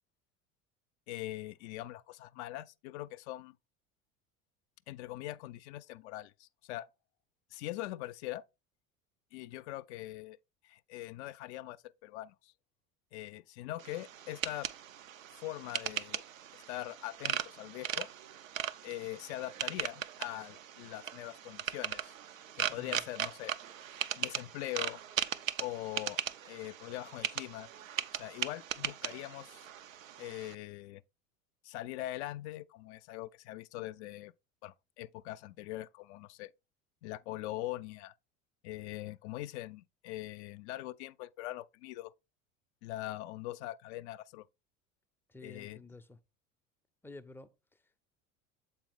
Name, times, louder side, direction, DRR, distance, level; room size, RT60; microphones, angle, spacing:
voice 1, 1.1-3.6 4.9-6.9 7.5-8.4 9.3-10.4 10.6-12.5 13.1-14.7 15.4-16.2 16.5-18.1 18.8-22.1 22.5-23.5 24.1-25.0 25.6-26.2 26.4-27.7 28.1-29.7 30.2-31.0 31.6-34.3 34.6-36.5 37.0-38.1 38.6-42.1 42.8-44.5 45.4-45.8, left 16 dB, 60° left, 0.4 m, -42 dB
sound 1, 13.8-30.5, right 10 dB, 85° right, 0.5 m, -39 dB
voice 2, 22.7-23.0 45.3-46.2 47.0-47.5, left 3 dB, 5° left, 0.4 m, -50 dB
7.4 x 4.3 x 3.4 m
figure-of-eight pair, 70°, 39 cm